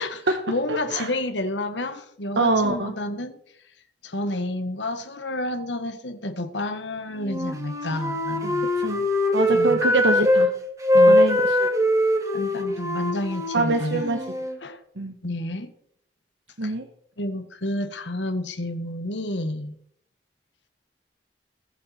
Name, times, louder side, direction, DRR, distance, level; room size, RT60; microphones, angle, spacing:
voice 1, 0.0-3.4 4.0-8.7 9.5-9.8 10.9-11.2 12.3-14.0 14.6-14.8 15.2-15.7 16.6-16.7 17.2-19.8, left 1 dB, 85° left, 1.5 m, -30 dB
voice 2, 0.7-1.1 2.4-2.9 8.4-8.5 8.8-9.1 9.3-10.5 11.1-11.7 13.5-14.2 15.0-15.2 16.6-16.9, right 2 dB, 80° right, 1.2 m, -24 dB
Wind instrument woodwind instrument, 7.2-10.5 10.8-14.6, left 1 dB, 20° right, 2.4 m, -22 dB
21.0 x 7.2 x 4.3 m
head